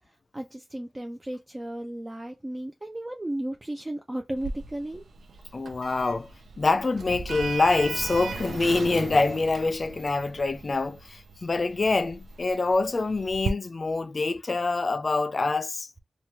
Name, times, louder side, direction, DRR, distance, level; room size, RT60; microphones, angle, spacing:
voice 1, 0.1-5.0, right 1 dB, 25° right, 0.5 m, -35 dB
Sliding door, 4.4-13.5, right 4 dB, 80° right, 0.4 m, -38 dB
voice 2, 5.5-6.3 6.6-15.9, left 3 dB, 50° left, 0.4 m, -25 dB
3.0 x 2.3 x 2.8 m
cardioid pair, 65°, 0 cm